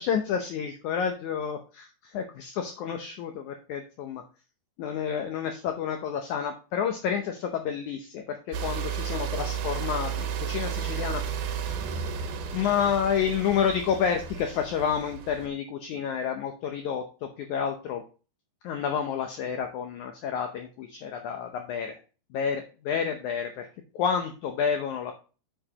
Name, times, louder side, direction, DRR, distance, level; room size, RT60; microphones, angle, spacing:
voice 1, 0.0-4.2 4.8-11.2 11.6-11.8 12.5-18.0 18.6-22.0 22.3-23.7 23.9-25.1, left 7 dB, 85° left, 5 dB, 1.7 m, -29 dB
sound 1, 8.5-15.5, right 7 dB, 75° right, 2.8 m, -33 dB
8.8 x 7.0 x 2.9 m, 0.34 s
omnidirectional pair, 4.5 m